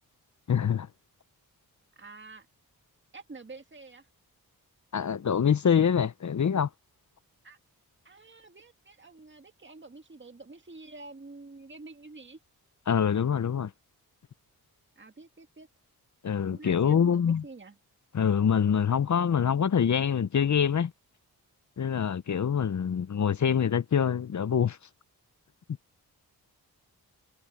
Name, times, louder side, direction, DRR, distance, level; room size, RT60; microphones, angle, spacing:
voice 1, 0.5-0.9 4.9-6.7 12.9-13.7 16.2-17.4 18.1-20.9 21.8-24.8, left 7 dB, 45° left, 0.8 m, -25 dB
voice 2, 2.0-2.5 3.1-4.1 7.4-7.6 8.0-12.4 15.0-15.7 16.5-17.8, right 3 dB, 30° right, 2.0 m, -48 dB
cardioid pair, 55°, 39 cm